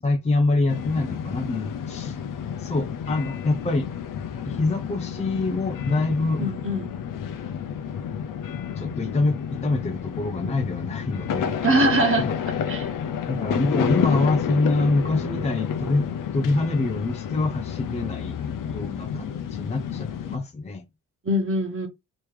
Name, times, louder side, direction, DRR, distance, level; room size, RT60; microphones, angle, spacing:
voice 1, 0.0-2.2 2.6-3.9 4.4-6.5 8.7-11.6 12.2-12.3 13.3-16.1 16.3-20.8, left 3 dB, 20° left, 0.6 m, -25 dB
sound 1, 0.7-20.4, left 8 dB, 65° left, 0.7 m, -30 dB
voice 2, 6.4-6.9 11.6-12.3 12.7-12.9 19.1-19.3 21.2-21.9, right 1 dB, 35° right, 1.5 m, -22 dB
3.1 x 3.0 x 3.2 m
cardioid pair, 75°, 35 cm